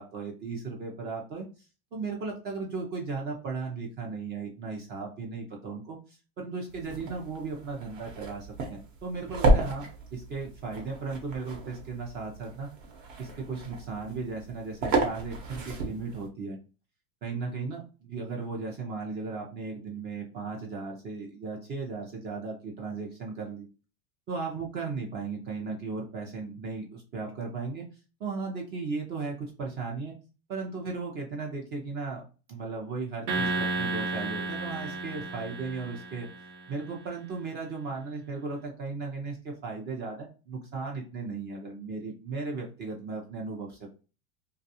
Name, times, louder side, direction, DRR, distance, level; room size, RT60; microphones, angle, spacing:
voice 1, 0.0-1.5 1.9-12.7 13.2-16.6 17.2-23.7 24.3-27.8 28.2-30.1 30.5-32.2 32.5-36.3 36.7-43.9, right 4 dB, 25° right, 0 dB, 0.3 m, -36 dB
sound 1, 6.7-16.3, right 2 dB, 60° right, 0.9 m, -32 dB
sound 2, 33.3-36.7, right 2 dB, 85° right, 0.9 m, -32 dB
2.3 x 2.3 x 2.7 m, 0.34 s
supercardioid pair, 135°, 44 cm